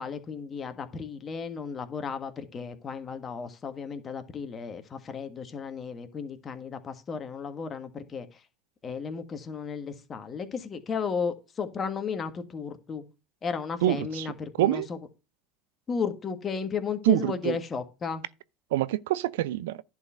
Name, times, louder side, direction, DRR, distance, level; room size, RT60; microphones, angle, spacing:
voice 1, 0.0-8.3 8.8-13.0 13.4-15.0 15.9-18.2, left 6 dB, 35° left, 1.6 m, -34 dB
voice 2, 13.8-14.3 14.6-14.9 17.0-17.6 18.7-19.8, right 15 dB, 75° right, 0.4 m, -25 dB
11.0 x 4.5 x 5.6 m
hypercardioid pair, 85°, 0 cm